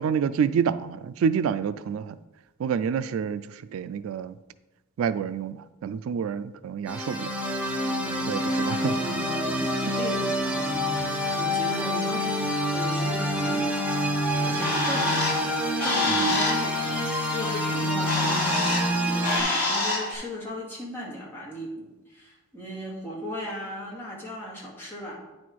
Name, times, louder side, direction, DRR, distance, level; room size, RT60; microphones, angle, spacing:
voice 1, 0.0-2.2 2.6-4.4 5.0-7.3 8.3-9.0 16.1-16.3, right 7 dB, 75° right, 14 dB, 0.3 m, -28 dB
sound 1, 6.9-19.4, equal, 5° right, 0.9 m, -27 dB
voice 2, 7.8-13.7 14.3-15.5 15.8-25.2, equal, 10° left, -6 dB, 2.2 m, -37 dB
Bird, 14.2-20.1, left 2 dB, 50° left, 2.1 m, -28 dB
9.4 x 4.2 x 4.6 m, 1.1 s
head